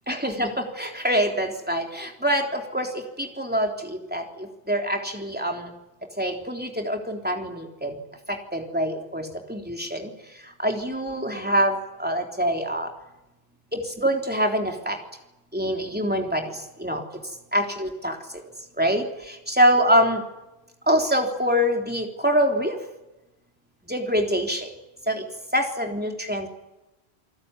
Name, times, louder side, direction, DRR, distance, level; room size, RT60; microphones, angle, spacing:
voice 1, 0.1-4.2 4.7-5.7 6.2-7.9 8.3-10.1 10.6-12.9 13.7-15.0 15.5-16.4 16.8-17.0 17.5-18.2 18.8-20.2 20.9-22.8 23.9-24.7 25.1-25.2 25.5-26.5, equal, 10° right, 2 dB, 3.6 m, -25 dB
29.0 x 19.5 x 9.8 m, 1.0 s
omnidirectional pair, 1.0 m